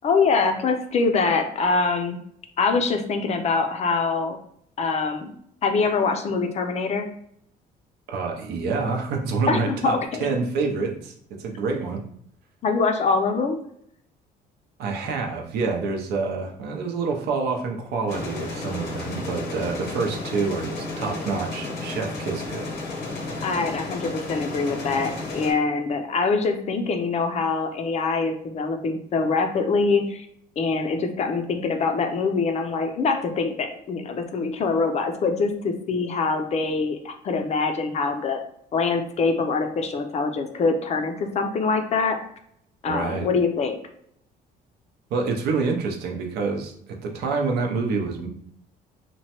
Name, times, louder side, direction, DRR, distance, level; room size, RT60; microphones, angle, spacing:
voice 1, 0.0-2.2 2.6-4.4 4.8-5.3 5.6-7.1 9.5-10.3 12.6-13.6 23.4-30.3 30.6-38.4 38.7-42.2 42.8-43.8, left 4 dB, 40° left, 6 dB, 0.4 m, -24 dB
voice 2, 8.1-10.0 10.2-12.0 14.8-22.7 42.9-43.3 45.1-48.3, right 4 dB, 75° right, 2 dB, 0.6 m, -27 dB
sound 1, 18.1-25.5, left 2 dB, 80° left, 0.8 m, -32 dB
3.0 x 2.1 x 2.8 m, 0.68 s
cardioid pair, 110°, 17 cm